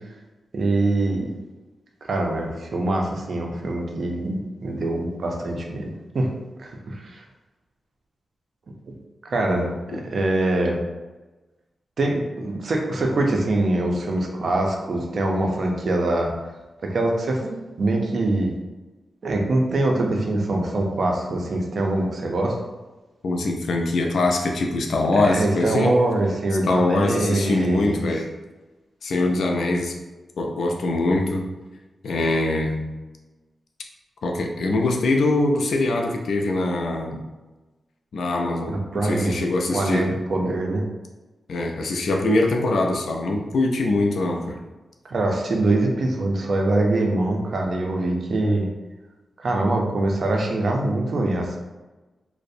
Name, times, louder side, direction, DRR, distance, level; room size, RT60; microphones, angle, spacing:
voice 1, 0.5-1.3 2.1-6.3 6.6-7.2 9.2-10.8 12.0-16.3 16.8-18.5 19.2-22.6 25.2-28.1 38.7-39.4 39.7-40.8 45.1-48.7 49.4-51.6, right 2 dB, 60° right, 1 dB, 0.4 m, -23 dB
voice 2, 9.5-10.0 23.2-26.0 26.6-28.3 29.0-29.9 30.4-31.5 32.0-32.9 34.2-37.2 38.1-38.8 39.0-40.1 41.5-44.6, left 2 dB, 80° left, 2 dB, 0.3 m, -23 dB
2.4 x 2.0 x 2.6 m, 1.1 s
wide cardioid pair, 90°, 0 cm